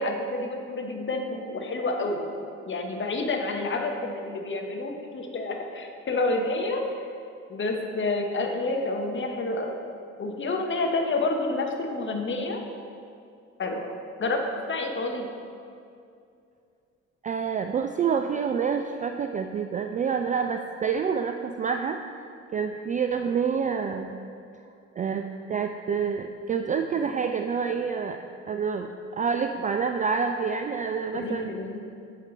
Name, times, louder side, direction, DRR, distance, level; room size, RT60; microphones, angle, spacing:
voice 1, 0.0-2.2 2.6-7.1 7.5-9.8 10.2-12.6 13.6-13.9 14.2-15.3 31.1-31.8, left 2 dB, 30° left, 3 dB, 1.1 m, -29 dB
voice 2, 17.2-22.2 22.5-24.2 25.0-28.2 28.5-31.5, right 6 dB, 20° right, 6 dB, 0.3 m, -28 dB
8.6 x 6.5 x 4.1 m, 2.4 s
figure-of-eight pair, 45°, 38 cm